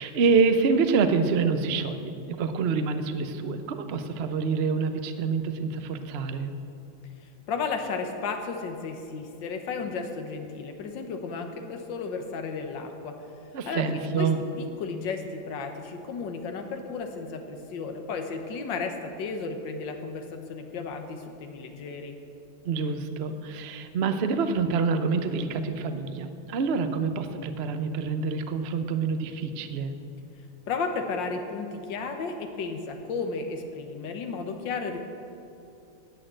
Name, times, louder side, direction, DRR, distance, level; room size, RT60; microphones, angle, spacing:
voice 1, 0.0-6.5 13.5-14.4 22.6-29.9, right 5 dB, 85° right, 8 dB, 0.5 m, -26 dB
voice 2, 7.5-13.1 13.7-14.3 14.6-22.2 30.7-35.0, left 4 dB, 65° left, 5 dB, 1.8 m, -33 dB
18.5 x 6.6 x 7.6 m, 2.7 s
omnidirectional pair, 2.3 m